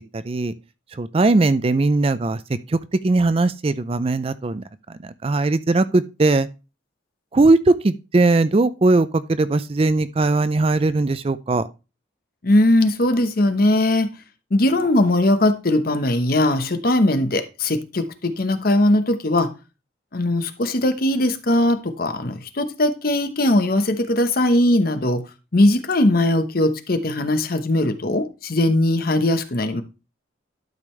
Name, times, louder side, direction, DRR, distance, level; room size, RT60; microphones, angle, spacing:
voice 1, 0.1-0.5 0.9-2.4 2.7-6.5 7.3-11.7, right 2 dB, 30° right, 0.4 m, -19 dB
voice 2, 12.4-14.1 14.5-19.5 20.1-25.2 25.5-29.8, left 1 dB, 50° left, 1.0 m, -19 dB
12.0 x 5.1 x 3.2 m
head